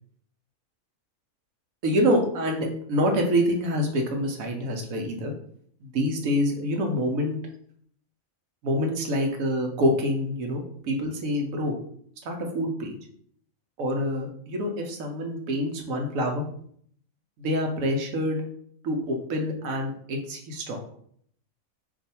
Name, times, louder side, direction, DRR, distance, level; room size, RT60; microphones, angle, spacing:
voice 1, 1.8-5.3 5.8-7.4 8.6-11.7 12.2-13.0 13.8-16.5 17.4-18.4 18.8-20.8, equal, 80° right, 2 dB, 1.1 m, -26 dB
2.6 x 2.4 x 4.1 m, 0.62 s
omnidirectional pair, 1.4 m